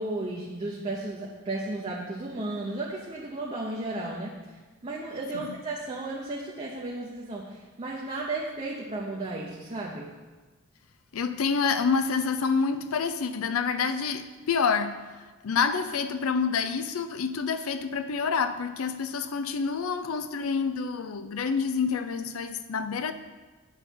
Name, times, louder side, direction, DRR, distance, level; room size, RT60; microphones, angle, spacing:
voice 1, 0.0-4.3 4.8-10.1, right 2 dB, 30° right, -3 dB, 0.8 m, -34 dB
voice 2, 11.1-15.0 15.4-23.1, left 5 dB, 85° left, 10 dB, 0.5 m, -28 dB
8.2 x 5.5 x 4.5 m, 1.3 s
head